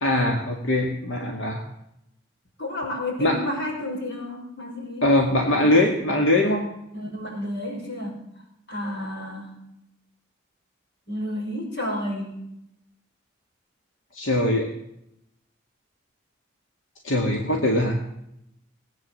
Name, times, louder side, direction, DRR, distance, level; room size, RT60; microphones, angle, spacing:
voice 1, 0.0-1.6 3.2-3.4 5.0-6.7 14.1-14.7 17.0-18.0, left 1 dB, 90° left, 1 dB, 2.1 m, -21 dB
voice 2, 2.6-5.1 5.4-5.7 6.9-8.2 8.7-9.5 11.1-12.4, left 1 dB, 60° left, -1 dB, 5.7 m, -31 dB
19.0 x 9.2 x 7.7 m, 0.80 s
head